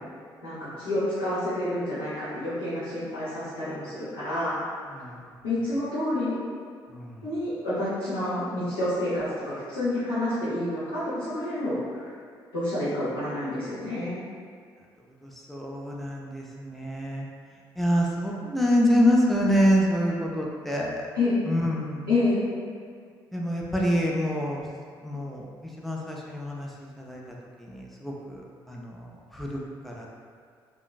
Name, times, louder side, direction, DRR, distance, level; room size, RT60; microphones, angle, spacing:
voice 1, 0.4-4.6 5.4-6.4 7.2-12.1 12.5-14.2 21.1-21.4 22.1-22.5, left 1 dB, 80° left, -15 dB, 0.8 m, -28 dB
voice 2, 15.2-17.3 17.8-21.1 21.5-22.0 23.3-24.6 25.0-25.4 25.8-26.7 27.0-27.2 27.6-28.4 28.7-29.0 29.3-30.1, equal, ahead, -3 dB, 0.5 m, -26 dB
2.9 x 2.5 x 2.3 m, 2.1 s
figure-of-eight pair, 40°, 12 cm